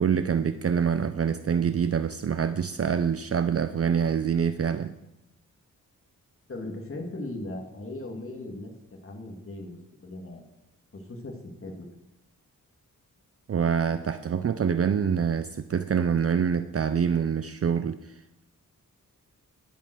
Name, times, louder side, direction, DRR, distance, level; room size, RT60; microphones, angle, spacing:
voice 1, 0.0-4.9 13.5-18.4, right 7 dB, 45° right, 10 dB, 0.5 m, -26 dB
voice 2, 6.5-8.7 9.0-10.4 10.9-11.7, left 2 dB, 40° left, 1 dB, 2.1 m, -38 dB
10.5 x 9.1 x 6.3 m, 0.96 s
wide cardioid pair, 135°, 33 cm